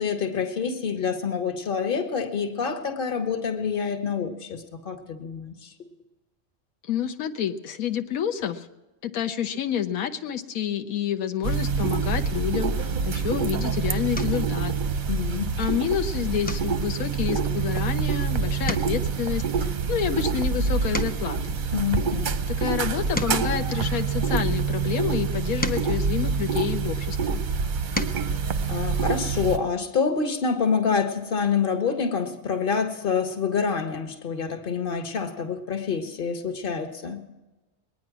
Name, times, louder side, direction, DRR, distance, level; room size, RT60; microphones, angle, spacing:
voice 1, 0.0-5.5 15.1-15.6 21.7-22.4 28.7-37.2, left 6 dB, 40° left, 7 dB, 1.4 m, -27 dB
voice 2, 6.8-8.7 9.0-14.8 15.6-21.6 22.5-27.4, left 9 dB, 85° left, 6 dB, 1.2 m, -28 dB
sound 1, 11.4-29.6, right 5 dB, 45° right, 0.7 m, -26 dB
sound 2, 14.1-14.5 15.0-15.4 15.7-15.9 16.4-18.2 18.5-21.5 22.1-24.5 25.2-27.1 27.6-28.3 29.7-29.8 30.1-30.3, left 2 dB, 10° left, 0.6 m, -36 dB
21.5 x 9.6 x 6.0 m, 1.1 s
omnidirectional pair, 1.5 m